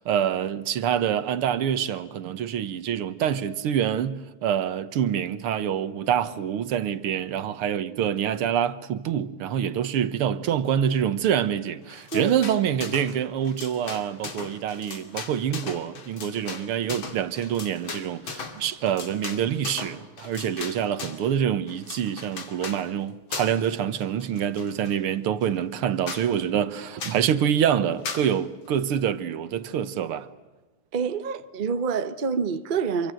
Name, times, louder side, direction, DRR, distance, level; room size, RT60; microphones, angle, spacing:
voice 1, 0.0-30.3, right 9 dB, 85° right, 2.0 m, -26 dB
sound 1, 11.9-13.2 13.4-21.3 21.7-22.8 23.3-23.7 24.0-25.0 25.4-25.5 25.8-25.9 26.1-26.3 27.0-27.3 28.0-28.3, left 5 dB, 65° left, 3.2 m, -37 dB
voice 2, 30.9-33.1, right 5 dB, 35° right, 0.8 m, -27 dB
26.5 x 24.5 x 7.8 m
omnidirectional pair, 2.4 m